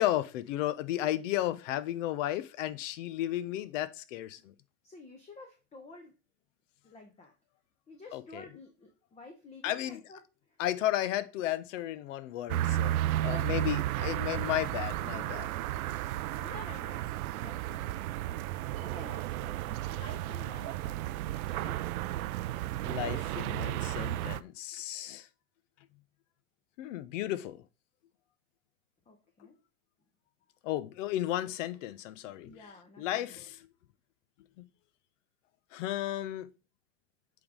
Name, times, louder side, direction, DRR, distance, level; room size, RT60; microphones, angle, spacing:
voice 1, 0.0-4.5 8.1-8.4 9.6-10.0 10.6-15.5 21.6-21.8 22.8-25.3 26.8-27.6 30.6-32.6 33.0-33.6 34.6-34.7 35.7-36.5, left 13 dB, 55° left, 0.7 m, -34 dB
voice 2, 4.8-6.2 6.8-7.3 7.9-10.6 13.2-14.4 16.1-17.9 18.8-21.3 21.8-22.1 29.1-29.6 32.4-33.5, left 2 dB, 15° left, 0.8 m, -51 dB
sound 1, 12.5-24.4, right 14 dB, 70° right, 0.5 m, -33 dB
7.6 x 3.6 x 3.6 m
hypercardioid pair, 120°, 45 cm